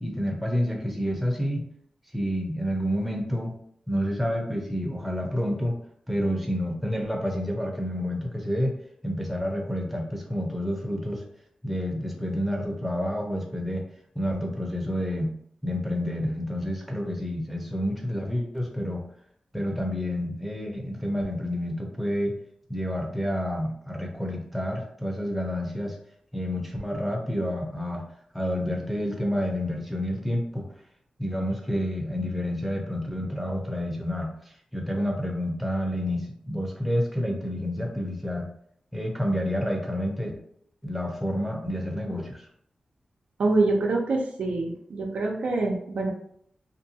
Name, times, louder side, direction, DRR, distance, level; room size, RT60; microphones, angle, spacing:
voice 1, 0.0-1.7 2.1-3.5 3.9-5.8 6.1-8.8 9.0-11.3 11.6-13.8 14.1-15.3 15.6-19.0 19.5-22.4 22.7-26.0 26.3-28.0 28.3-30.7 31.2-34.3 34.7-38.5 38.9-40.4 40.8-42.5, equal, 5° right, 0 dB, 0.7 m, -29 dB
voice 2, 43.4-46.1, right 2 dB, 80° right, 0 dB, 0.5 m, -25 dB
2.6 x 2.2 x 2.7 m, 0.66 s
cardioid pair, 60°, 2 cm